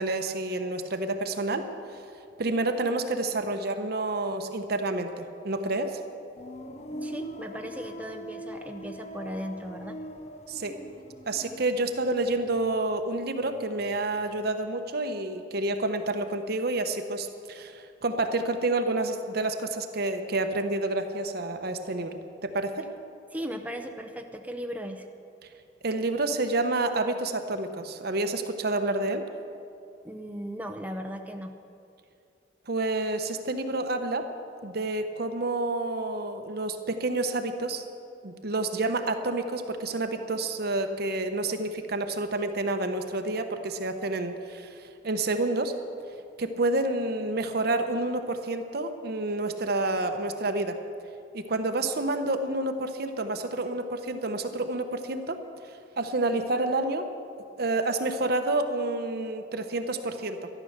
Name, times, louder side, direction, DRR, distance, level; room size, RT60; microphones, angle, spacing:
voice 1, 0.0-1.7 2.4-6.0 10.5-10.8 11.3-22.9 25.8-29.2 32.7-34.3 34.6-37.8 38.2-45.8 46.4-50.8 51.3-55.4 56.0-57.1 57.6-60.5, right 2 dB, 60° right, 7 dB, 0.9 m, -29 dB
sound 1, 6.4-13.2 13.5-14.2, equal, 40° left, 0.8 m, -42 dB
voice 2, 7.0-10.0 23.3-25.0 30.0-31.5, equal, 10° right, 4 dB, 0.7 m, -37 dB
13.0 x 11.5 x 6.5 m, 2.5 s
head